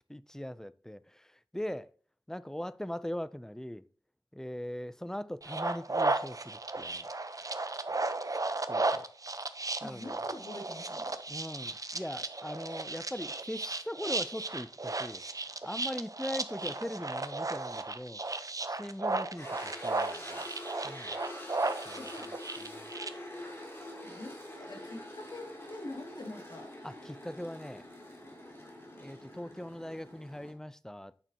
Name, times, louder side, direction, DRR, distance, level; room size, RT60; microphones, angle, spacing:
voice 1, 0.1-1.9 2.3-3.8 4.3-7.1 8.7-9.1 9.8-10.2 11.3-15.2 15.6-18.2 18.7-20.4 20.8-21.1 21.9-22.3 22.6-22.9 26.8-27.8 29.0-31.1, equal, 5° left, 0.4 m, -40 dB
sound 1, 5.4-23.1, right 2 dB, 40° right, 0.8 m, -35 dB
voice 2, 8.7-9.1 9.8-11.2 16.6-16.8 22.0-22.3 23.5-23.7 24.0-26.7, left 2 dB, 55° left, 2.4 m, -45 dB
sound 2, 19.4-30.5, left 1 dB, 30° left, 2.8 m, -46 dB
9.0 x 6.7 x 2.8 m
wide cardioid pair, 70°, 9 cm